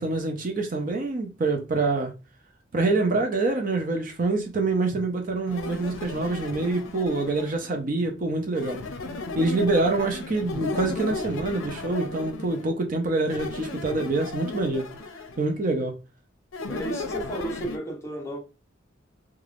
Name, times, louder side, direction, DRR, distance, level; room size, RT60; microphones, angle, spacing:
voice 1, 0.0-2.1 2.7-8.8 9.3-14.9 15.4-15.9, right 3 dB, 45° right, 0.5 m, -26 dB
sound 1, 5.5-7.7 8.5-12.7 13.3-15.4 16.5-17.8, left 3 dB, 85° left, 0.5 m, -35 dB
voice 2, 16.7-18.4, right 1 dB, 15° left, 0.6 m, -33 dB
3.3 x 2.3 x 2.4 m
head